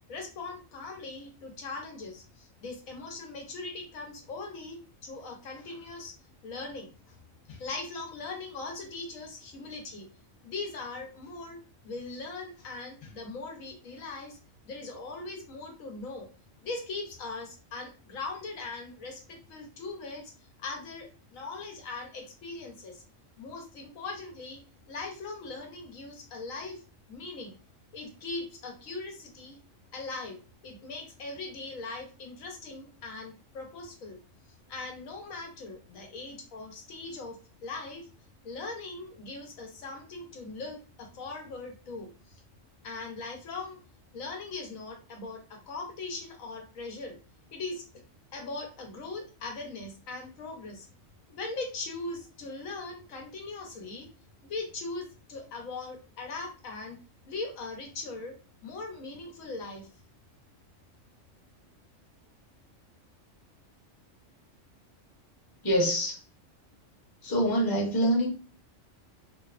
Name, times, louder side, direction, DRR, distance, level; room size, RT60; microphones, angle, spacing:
voice 1, 0.1-6.1 6.4-7.2 7.5-10.1 10.4-11.6 11.8-14.4 14.6-16.3 16.6-20.3 20.6-23.0 23.4-24.6 24.9-26.8 27.1-27.5 27.9-29.6 29.9-34.2 34.7-38.1 38.4-42.4 42.8-43.8 44.1-47.2 47.5-47.8 48.3-50.9 51.3-54.1 54.4-57.0 57.3-58.3 58.6-59.9, left 3 dB, 85° left, 2 dB, 1.1 m, -40 dB
voice 2, 65.6-66.2 67.2-68.3, equal, 20° left, -2 dB, 0.7 m, -25 dB
2.9 x 2.0 x 2.3 m, 0.35 s
omnidirectional pair, 1.4 m